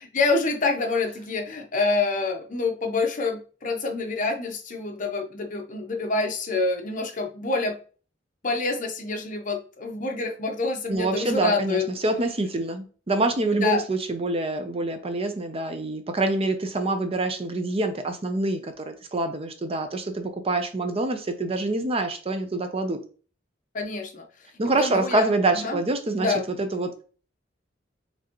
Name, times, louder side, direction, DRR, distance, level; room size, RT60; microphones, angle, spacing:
voice 1, 0.1-7.8 8.4-11.9 13.5-13.8 23.7-24.3 24.8-25.8 26.2-26.4, left 3 dB, 45° left, 4 dB, 0.9 m, -27 dB
voice 2, 10.9-23.0 24.6-27.0, right 2 dB, 30° right, 7 dB, 0.6 m, -26 dB
4.8 x 3.4 x 3.0 m, 0.39 s
head